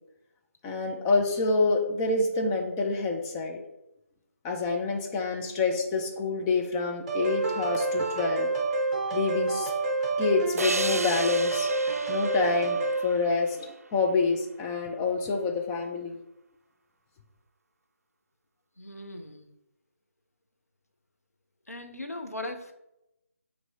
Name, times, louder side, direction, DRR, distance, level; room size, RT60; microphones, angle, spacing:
voice 1, 0.6-3.6 4.4-8.5 9.1-9.7 10.2-11.7 12.1-16.2, left 3 dB, 10° left, 1 dB, 0.5 m, -27 dB
sound 1, 7.1-13.0, right 3 dB, 30° right, 1.1 m, -28 dB
sound 2, 10.6-13.9, right 3 dB, 80° right, 0.4 m, -35 dB
voice 2, 18.8-19.5 21.7-22.7, left 1 dB, 85° left, 5 dB, 1.0 m, -38 dB
6.1 x 3.2 x 5.2 m, 0.87 s
figure-of-eight pair, 155°, 8 cm